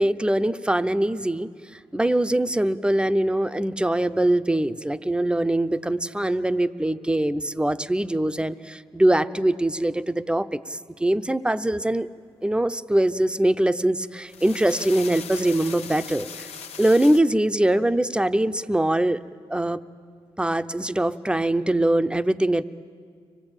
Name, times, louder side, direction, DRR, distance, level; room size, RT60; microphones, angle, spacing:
voice 1, 0.0-12.1 12.4-16.3 16.8-19.2 19.5-19.8 20.4-22.6, right 1 dB, 10° right, 11 dB, 0.7 m, -23 dB
sound 1, 14.1-17.2, left 7 dB, 90° left, 0.9 m, -39 dB
25.0 x 18.5 x 8.9 m, 2.1 s
cardioid pair, 65°, 11 cm